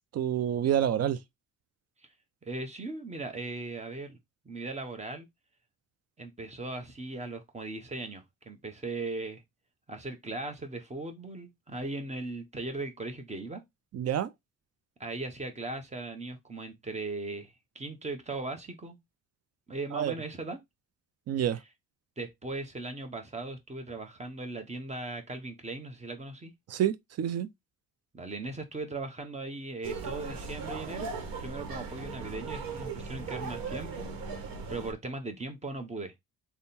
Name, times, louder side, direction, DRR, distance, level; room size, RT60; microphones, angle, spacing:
voice 1, 0.1-1.2 13.9-14.3 19.9-20.1 21.3-21.6 26.7-27.5, right 10 dB, 45° right, 0.5 m, -28 dB
voice 2, 2.4-4.2 4.4-5.3 6.2-9.4 9.9-13.6 15.0-19.0 19.7-20.6 22.2-26.5 28.1-31.1 31.4-34.1 34.7-36.1, right 2 dB, 20° right, 1.0 m, -38 dB
sound 1, 29.8-34.9, right 4 dB, 85° right, 1.1 m, -38 dB
3.5 x 2.2 x 4.1 m
cardioid pair, 100°, 34 cm